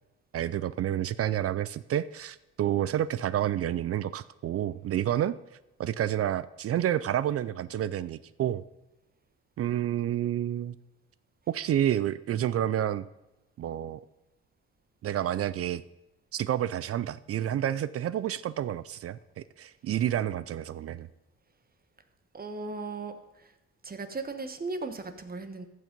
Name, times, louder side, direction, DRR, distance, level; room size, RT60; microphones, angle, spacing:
voice 1, 0.3-5.4 5.8-8.6 9.6-10.8 11.5-13.0 13.6-14.0 15.0-15.8 16.3-21.1, right 11 dB, 50° right, 17 dB, 0.4 m, -29 dB
voice 2, 22.3-23.1 23.8-25.7, right 3 dB, 30° right, 9 dB, 1.3 m, -36 dB
14.5 x 6.4 x 5.3 m, 1.0 s
cardioid pair, 90°, 30 cm